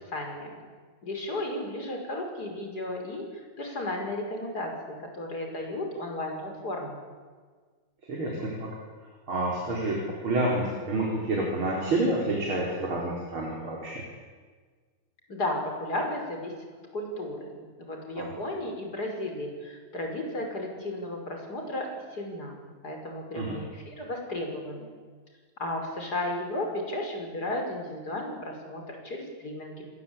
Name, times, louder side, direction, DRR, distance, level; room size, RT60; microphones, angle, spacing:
voice 1, 0.1-0.6 1.0-7.0 15.3-16.5 16.9-22.6 22.8-24.9 25.6-29.9, left 1 dB, 45° left, 2 dB, 6.1 m, -34 dB
voice 2, 8.1-8.8 9.3-14.0 18.2-18.3 23.3-23.6, right 2 dB, 75° right, -2 dB, 5.1 m, -29 dB
29.0 x 21.5 x 8.8 m, 1.5 s
omnidirectional pair, 2.3 m